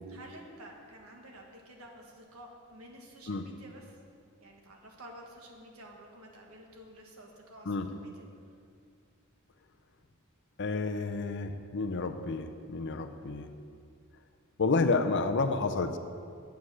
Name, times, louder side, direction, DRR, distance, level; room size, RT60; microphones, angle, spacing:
voice 1, 0.1-4.0 4.4-8.2, right 1 dB, 80° right, 1 dB, 1.5 m, -51 dB
voice 2, 10.6-13.5 14.6-16.0, left 3 dB, 55° left, 8 dB, 0.6 m, -30 dB
8.3 x 7.6 x 6.3 m, 2.3 s
head